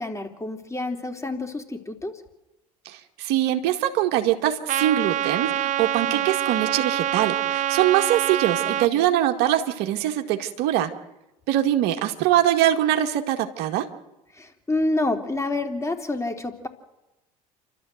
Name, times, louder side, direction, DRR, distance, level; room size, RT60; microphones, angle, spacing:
voice 1, 0.0-2.2 6.1-6.3 8.7-9.0 14.3-16.7, left 2 dB, 15° left, 5 dB, 3.5 m, -28 dB
voice 2, 2.9-10.9 11.5-13.9, right 12 dB, 65° right, 5 dB, 1.9 m, -23 dB
Trumpet, 4.7-8.9, right 12 dB, 40° right, 0.7 m, -25 dB
29.0 x 13.0 x 7.9 m, 0.97 s
hypercardioid pair, 70°, 18 cm